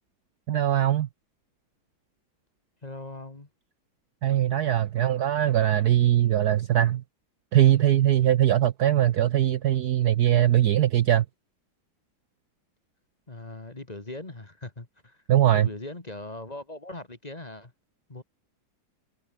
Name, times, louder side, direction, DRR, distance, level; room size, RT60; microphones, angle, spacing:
voice 1, 0.5-1.1 4.2-7.0 7.5-11.2 15.3-15.7, right 12 dB, 65° right, 1.1 m, -21 dB
voice 2, 2.8-3.5 13.3-15.2 15.5-17.7 18.1-18.2, left 2 dB, 20° left, 2.0 m, -40 dB
omnidirectional pair, 2.2 m